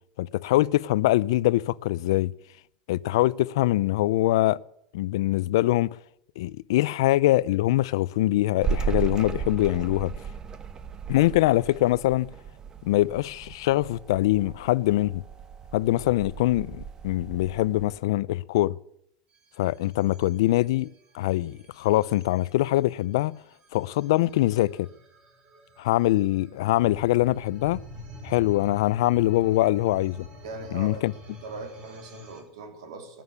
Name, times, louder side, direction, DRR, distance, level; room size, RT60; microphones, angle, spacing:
voice 1, 0.2-2.3 2.9-4.6 4.9-5.9 6.4-10.1 11.1-12.3 12.8-15.2 15.7-18.8 19.6-20.9 21.1-23.4 23.7-24.9 25.8-27.8 28.2-30.3 30.7-31.1, left 16 dB, 80° left, 0.5 m, -23 dB
sound 1, 8.6-18.0, right 7 dB, 30° right, 1.1 m, -35 dB
sound 2, 19.3-32.4, left 1 dB, 45° right, 3.6 m, -46 dB
voice 2, 30.4-31.0 31.3-33.2, right 3 dB, 80° right, 2.9 m, -40 dB
13.0 x 9.3 x 9.5 m
supercardioid pair, 110°, 2 cm